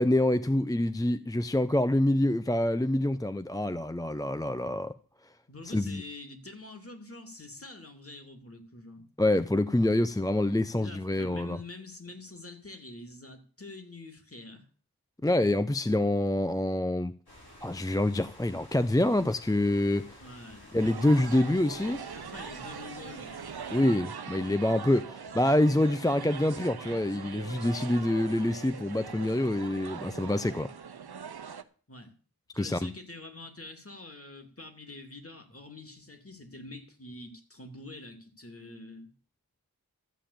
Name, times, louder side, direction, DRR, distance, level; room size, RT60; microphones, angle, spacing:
voice 1, 0.0-4.9 5.7-6.0 9.2-11.6 15.2-17.1 17.6-20.2 20.7-22.0 23.7-30.7 32.6-32.9, left 1 dB, 10° left, 0.5 m, -26 dB
voice 2, 5.5-9.0 10.7-14.6 20.2-20.8 22.1-23.5 31.9-32.1 32.5-39.1, left 2 dB, 35° left, 2.8 m, -46 dB
sound 1, 17.3-23.8, equal, 85° left, 4.6 m, -52 dB
sound 2, 20.8-31.6, right 6 dB, 90° right, 0.9 m, -42 dB
13.5 x 5.6 x 8.6 m
wide cardioid pair, 40°, 37 cm